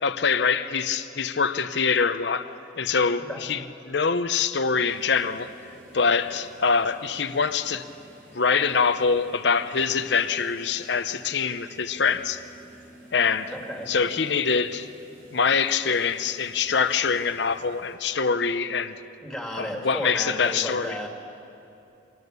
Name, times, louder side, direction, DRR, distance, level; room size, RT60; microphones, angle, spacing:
voice 1, 0.0-2.5 2.8-5.5 5.9-7.8 8.3-12.4 13.1-13.5 13.9-14.9 15.3-19.0 19.6-21.1, left 5 dB, 65° left, 11 dB, 0.8 m, -24 dB
sound 1, 4.8-18.0, right 1 dB, 55° right, 4.6 m, -51 dB
voice 2, 13.5-13.9 19.2-21.1, equal, 5° left, 0 dB, 2.7 m, -33 dB
25.5 x 19.0 x 6.8 m, 2.8 s
head